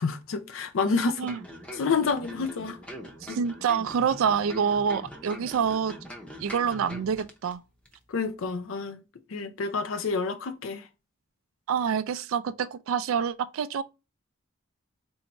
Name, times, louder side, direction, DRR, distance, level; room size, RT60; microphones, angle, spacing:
voice 1, 0.0-1.3 1.7-2.8 3.3-3.4 8.1-9.0 9.3-10.8, left 4 dB, 75° left, 0.5 m, -28 dB
sound 1, 1.3-7.5 7.9-8.0, left 1 dB, 5° left, 0.6 m, -43 dB
voice 2, 3.3-5.9 6.4-7.6 11.7-13.8, right 7 dB, 80° right, 0.3 m, -27 dB
4.3 x 2.7 x 2.9 m
head